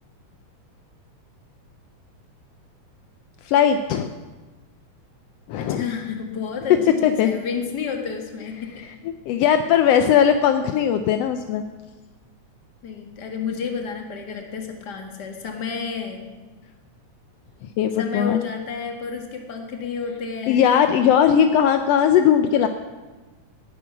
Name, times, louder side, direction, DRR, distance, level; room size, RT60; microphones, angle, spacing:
voice 1, 3.4-4.1 5.5-5.8 7.0-7.4 9.3-11.6 17.8-18.4 20.5-22.7, left 8 dB, 80° left, 8 dB, 1.5 m, -18 dB
voice 2, 5.6-8.8 12.8-16.3 18.0-20.7 22.5-22.7, left 6 dB, 40° left, 3 dB, 2.0 m, -31 dB
18.0 x 9.5 x 5.9 m, 1.2 s
omnidirectional pair, 3.4 m